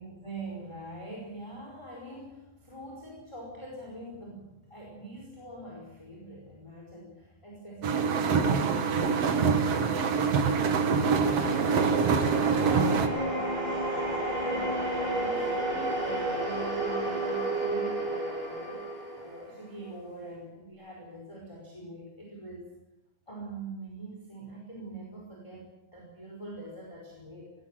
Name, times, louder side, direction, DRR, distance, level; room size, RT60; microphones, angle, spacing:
voice 1, 0.0-10.6 14.5-14.8 15.2-18.8 19.1-22.7 23.3-27.5, right 1 dB, 5° left, -2 dB, 4.7 m, -44 dB
sound 1, 7.8-13.1, right 5 dB, 55° right, 1.7 m, -25 dB
sound 2, 10.2-19.9, right 2 dB, 10° right, 5.9 m, -32 dB
21.0 x 18.5 x 7.8 m, 0.94 s
omnidirectional pair, 5.1 m